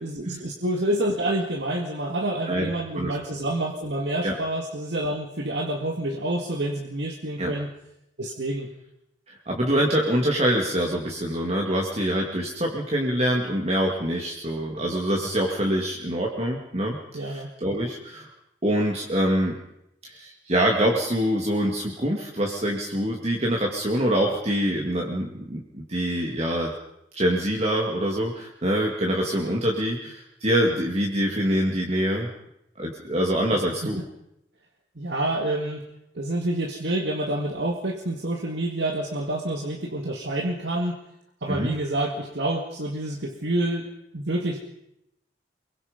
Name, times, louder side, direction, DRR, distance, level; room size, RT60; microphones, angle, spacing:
voice 1, 0.0-7.7 8.2-8.7 17.1-17.5 35.0-35.8 36.1-41.0 41.4-44.6, right 1 dB, 65° right, 1 dB, 2.2 m, -28 dB
voice 2, 2.5-3.1 4.2-4.3 7.4-7.5 9.3-18.3 18.6-19.6 20.0-26.7 27.1-32.3 32.8-34.0 41.5-41.7, equal, 35° right, -1 dB, 2.6 m, -25 dB
24.5 x 22.5 x 5.3 m, 0.82 s
head